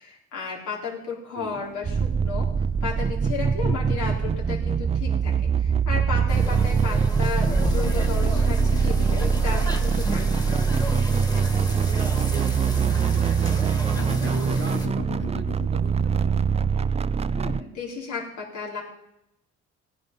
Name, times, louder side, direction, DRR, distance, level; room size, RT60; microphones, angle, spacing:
voice 1, 0.0-2.5 2.8-10.6 17.4-18.8, left 5 dB, 80° left, -2 dB, 3.7 m, -34 dB
sound 1, 1.4-16.7, left 9 dB, 45° left, 0.6 m, -41 dB
sound 2, 1.8-17.6, right 6 dB, 20° right, 0.4 m, -23 dB
sound 3, 6.3-14.9, left 1 dB, 10° left, 1.9 m, -34 dB
voice 2, 11.7-13.8 14.2-16.5, right 5 dB, 40° right, 11 dB, 1.0 m, -41 dB
16.0 x 9.6 x 5.3 m, 0.87 s
cardioid pair, 90°, 30 cm